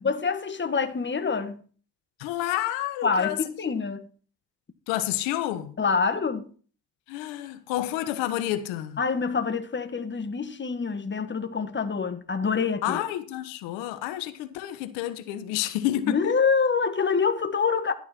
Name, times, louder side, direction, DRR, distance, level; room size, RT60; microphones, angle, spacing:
voice 1, 0.0-1.6 3.0-4.1 5.8-6.5 9.0-13.0 16.0-17.9, left 5 dB, 25° left, 1.6 m, -26 dB
voice 2, 2.2-3.4 4.9-5.7 7.1-9.0 12.8-16.3, left 13 dB, 85° left, 1.2 m, -29 dB
11.5 x 9.7 x 4.4 m
supercardioid pair, 70°, 44 cm